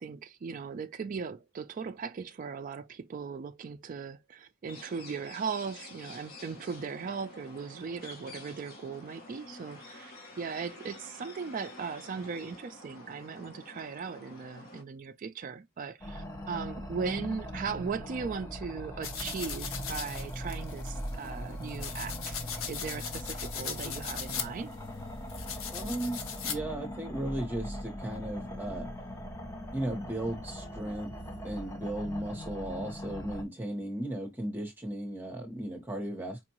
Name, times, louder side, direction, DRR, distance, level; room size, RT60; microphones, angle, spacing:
voice 1, 0.0-24.7, right 5 dB, 40° right, 0.3 m, -38 dB
sound 1, 4.7-14.8, left 2 dB, 50° left, 1.4 m, -49 dB
sound 2, 16.0-33.4, equal, 15° left, 1.0 m, -40 dB
sound 3, 19.0-26.5, left 7 dB, 85° left, 0.8 m, -39 dB
voice 2, 25.7-28.9 29.7-31.1 31.4-36.5, right 1 dB, 10° right, 1.2 m, -36 dB
4.6 x 2.5 x 2.9 m
head